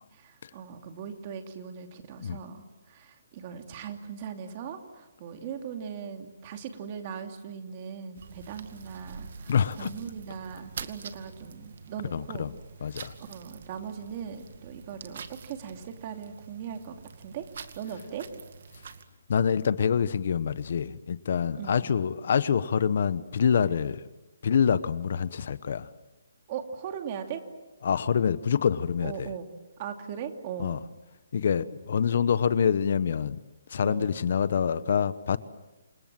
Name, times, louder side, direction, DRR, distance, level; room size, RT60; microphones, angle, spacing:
voice 1, 0.0-12.5 13.2-17.4 17.7-18.3 21.6-21.9 26.5-27.4 29.0-29.5 29.8-30.8 33.8-34.2, right 7 dB, 30° right, 5 dB, 2.7 m, -39 dB
sound 1, 8.1-19.0, right 6 dB, 55° right, 2.2 m, -46 dB
voice 2, 9.5-9.9 12.1-12.5 12.8-13.1 19.3-24.0 24.4-25.9 27.8-29.3 30.6-30.8 31.3-33.4 33.7-35.4, left 7 dB, 50° left, 16 dB, 1.1 m, -26 dB
28.5 x 27.0 x 7.7 m, 1.1 s
hypercardioid pair, 170°, 0 cm